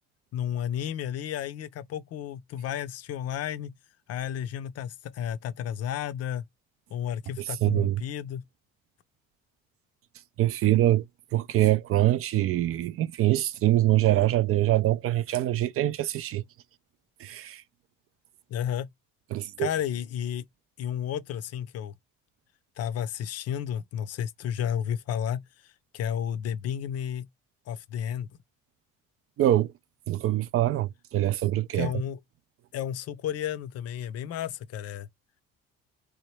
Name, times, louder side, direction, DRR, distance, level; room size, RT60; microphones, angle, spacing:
voice 1, 0.3-3.7 4.1-6.4 6.9-8.4 18.5-18.9 19.6-20.4 20.8-21.9 22.8-27.3 27.7-28.3 31.7-32.2 32.7-35.1, left 9 dB, 55° left, 0.6 m, -32 dB
voice 2, 7.6-8.0 10.4-11.0 11.3-16.4 17.2-17.6 19.3-19.7 29.4-29.7 30.1-31.9, right 14 dB, 50° right, 0.4 m, -24 dB
3.1 x 2.2 x 3.1 m
supercardioid pair, 75°, 30 cm